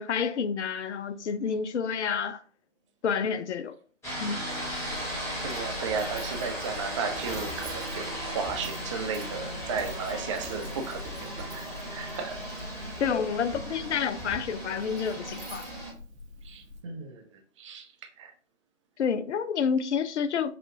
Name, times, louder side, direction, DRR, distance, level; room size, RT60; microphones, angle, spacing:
voice 1, 0.0-2.4 3.0-3.7 4.2-4.4 13.0-15.7 19.0-20.6, left 6 dB, 65° left, 0.5 m, -29 dB
sound 1, 4.0-15.9, right 1 dB, 5° left, 1.3 m, -37 dB
Coin (dropping), 4.5-16.8, left 1 dB, 60° right, 1.2 m, -44 dB
voice 2, 5.4-11.6 11.9-12.4 16.4-18.3, right 5 dB, 25° right, 0.5 m, -35 dB
5.8 x 2.4 x 2.6 m
figure-of-eight pair, 120°, 38 cm